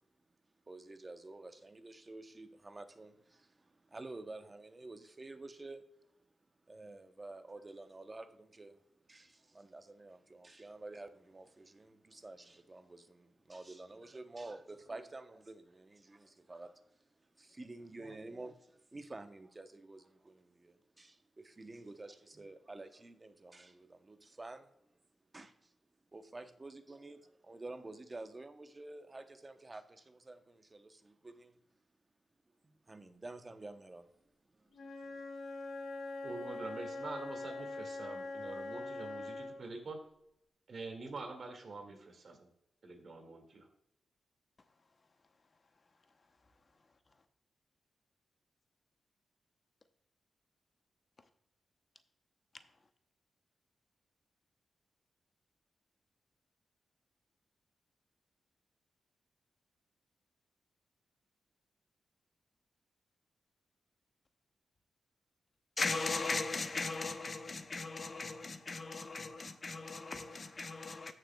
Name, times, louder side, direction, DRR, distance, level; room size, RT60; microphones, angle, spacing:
voice 1, 0.7-5.9 6.7-8.8 9.1-16.8 17.1-24.7 25.3-25.7 26.1-31.6 32.6-34.1 34.5-35.2, right 2 dB, 25° right, 0.8 m, -50 dB
Wind instrument woodwind instrument, 34.7-39.7, left 2 dB, 75° left, 2.2 m, -43 dB
voice 2, 36.2-40.0 40.7-42.5 42.8-43.7, right 3 dB, 55° right, 2.1 m, -46 dB
voice 3, 65.8-71.1, left 3 dB, 40° left, 0.8 m, -38 dB
14.5 x 6.5 x 2.3 m
cardioid pair, 85°, 0 cm